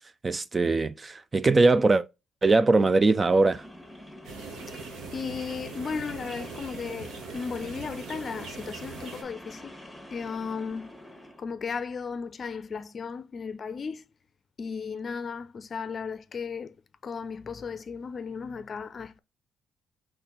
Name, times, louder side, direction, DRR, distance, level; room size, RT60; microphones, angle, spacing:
voice 1, 0.2-2.0 2.4-3.6, right 3 dB, 30° right, 0.4 m, -21 dB
sound 1, 2.6-11.4, left 1 dB, ahead, 1.2 m, -47 dB
sound 2, 4.2-9.2, right 4 dB, 85° right, 1.2 m, -41 dB
voice 2, 5.1-9.8 10.1-11.0 11.4-14.1 14.6-16.8 17.0-19.2, left 5 dB, 45° left, 0.5 m, -35 dB
4.3 x 3.3 x 3.7 m
cardioid pair, 90°, 0 cm